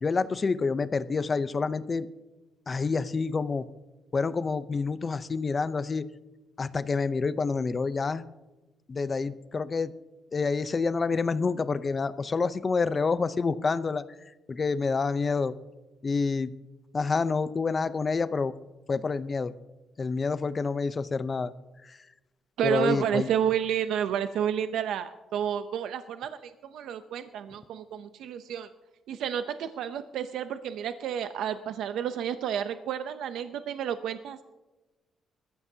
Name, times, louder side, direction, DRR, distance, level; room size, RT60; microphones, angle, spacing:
voice 1, 0.0-2.1 2.7-3.6 4.1-6.0 6.6-8.2 8.9-9.9 10.3-14.0 14.5-15.6 16.0-16.5 16.9-18.5 18.9-19.5 20.0-21.5 21.9-22.0 22.6-23.3, left 4 dB, 30° left, 13 dB, 0.6 m, -28 dB
voice 2, 22.6-28.7 29.1-34.4, right 9 dB, 80° right, 9 dB, 0.6 m, -30 dB
21.0 x 14.5 x 2.8 m, 1.1 s
cardioid pair, 110°, 0 cm